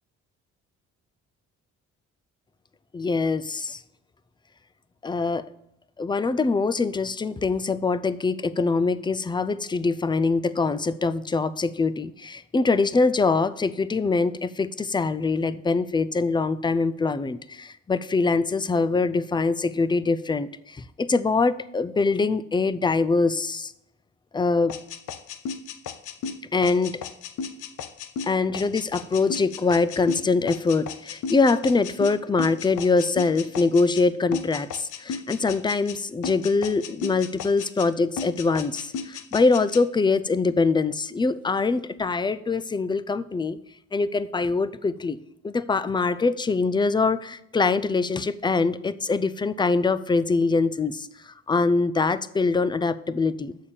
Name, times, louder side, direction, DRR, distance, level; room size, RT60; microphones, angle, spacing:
voice 1, 2.9-3.8 5.0-5.4 6.0-23.7 24.3-24.8 26.5-27.0 28.2-43.6 43.9-53.6, left 4 dB, 15° left, 15 dB, 0.4 m, -23 dB
sound 1, 24.7-34.1 34.3-36.0 36.2-37.9 38.2-39.8, left 6 dB, 80° left, 0.7 m, -35 dB
6.9 x 5.6 x 6.6 m, 0.79 s
cardioid pair, 90°, 30 cm